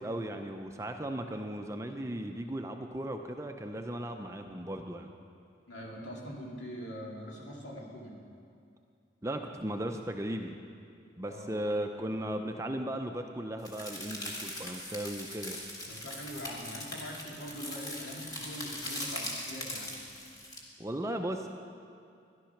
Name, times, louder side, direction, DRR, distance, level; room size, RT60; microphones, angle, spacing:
voice 1, 0.0-5.1 9.2-10.6 11.2-15.6 20.8-21.5, right 1 dB, 15° right, 5 dB, 0.5 m, -36 dB
voice 2, 5.7-8.2 11.3-11.8 15.9-19.9, equal, 75° left, -2 dB, 2.6 m, -43 dB
sound 1, 13.6-20.6, left 1 dB, 20° left, 1.7 m, -41 dB
13.0 x 11.5 x 5.9 m, 2.4 s
head